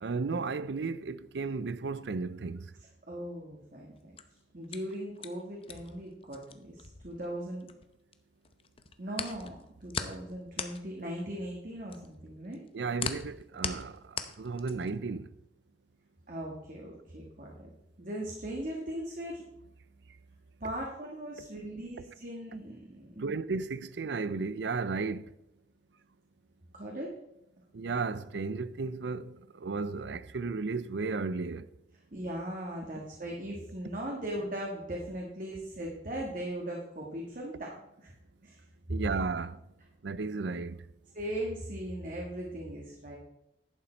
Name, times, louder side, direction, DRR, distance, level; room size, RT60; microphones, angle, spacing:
voice 1, 0.0-2.6 12.7-13.9 14.4-15.3 23.2-25.3 27.7-29.4 29.6-31.7 38.9-39.6 40.0-40.8, right 4 dB, 80° right, 0.5 m, -34 dB
voice 2, 3.1-4.1 4.5-7.7 9.0-9.5 9.8-12.6 16.3-17.5 18.0-19.4 20.6-23.4 26.7-27.1 32.1-38.1 38.4-38.6 38.9-39.0 41.1-43.2, right 1 dB, 50° right, 1.6 m, -39 dB
sound 1, 4.0-8.1 8.4-15.0, left 6 dB, 30° left, 0.7 m, -39 dB
11.0 x 8.6 x 4.4 m
head